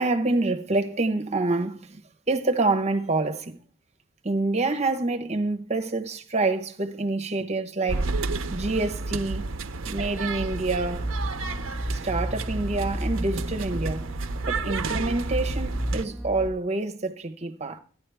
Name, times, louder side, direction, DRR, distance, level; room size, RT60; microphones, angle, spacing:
voice 1, 0.0-2.0 2.3-3.6 4.2-8.1 8.5-9.5 9.8-11.1 11.9-14.1 14.5-17.8, right 2 dB, 35° right, 1.0 m, -27 dB
sound 1, 7.9-16.0, right 3 dB, 85° right, 0.7 m, -31 dB
sound 2, 10.9-16.5, right 1 dB, ahead, 1.2 m, -32 dB
14.5 x 10.5 x 3.5 m
head